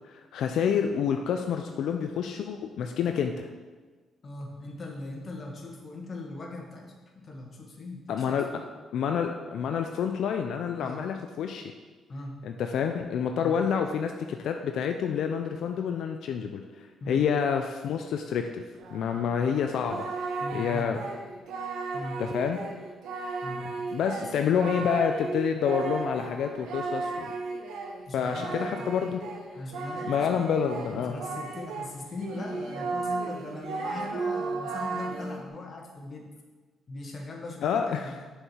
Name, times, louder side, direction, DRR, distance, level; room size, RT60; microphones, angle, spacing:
voice 1, 0.1-3.5 8.1-8.5 8.9-11.7 12.4-18.6 18.9-20.1 20.5-21.0 22.2-22.6 23.9-27.3 28.1-29.2 30.1-31.1 37.6-38.1, left 7 dB, 75° left, 5 dB, 0.4 m, -28 dB
voice 2, 4.2-8.7 10.8-11.1 12.1-12.4 13.4-13.6 17.0-17.3 20.4-21.0 21.9-22.3 23.4-23.9 24.2-24.9 28.1-29.0 29.5-36.3 36.9-38.2, left 2 dB, 40° left, 0 dB, 1.5 m, -40 dB
Singing, 18.8-31.9 32.2-35.4, right 3 dB, 85° right, 0.8 m, -35 dB
6.5 x 4.7 x 5.6 m, 1.4 s
cardioid pair, 90°, 0 cm